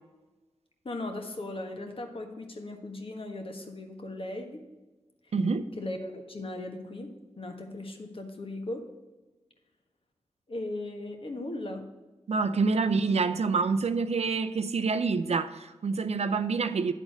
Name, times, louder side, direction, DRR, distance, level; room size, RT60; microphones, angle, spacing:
voice 1, 0.8-4.6 5.2-5.3 5.8-7.1 7.4-8.8 10.5-11.8, left 2 dB, 50° left, 1.4 m, -37 dB
voice 2, 5.3-5.6 12.3-16.9, right 4 dB, 60° right, 0.5 m, -27 dB
9.3 x 4.1 x 7.1 m
cardioid pair, 50°, 12 cm